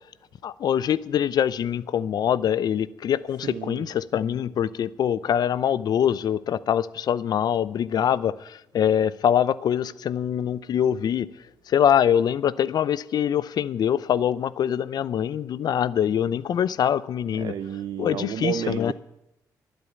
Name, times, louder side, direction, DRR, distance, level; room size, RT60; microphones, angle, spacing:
voice 1, 0.4-11.3 11.7-17.5 18.0-18.9, left 9 dB, 65° left, 0.6 m, -24 dB
voice 2, 3.4-3.9 17.3-18.9, right 10 dB, 75° right, 0.7 m, -31 dB
12.0 x 10.5 x 9.1 m
cardioid pair, 80°, 7 cm